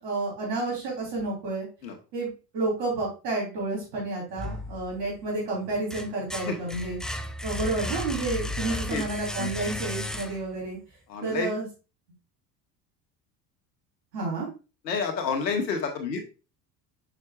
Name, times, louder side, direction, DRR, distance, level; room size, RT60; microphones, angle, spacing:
voice 1, 0.0-1.7 2.1-7.0 7.4-10.8 11.2-11.7 14.1-14.5, right 2 dB, 75° right, -3 dB, 3.6 m, -30 dB
sound 1, 4.4-5.2 5.6-10.7, left 1 dB, ahead, 0.3 m, -34 dB
voice 2, 8.7-9.0 9.4-9.5 11.1-11.5 14.8-16.2, left 5 dB, 90° left, 4 dB, 1.5 m, -29 dB
6.5 x 6.0 x 2.4 m, 0.31 s
hypercardioid pair, 75°, 49 cm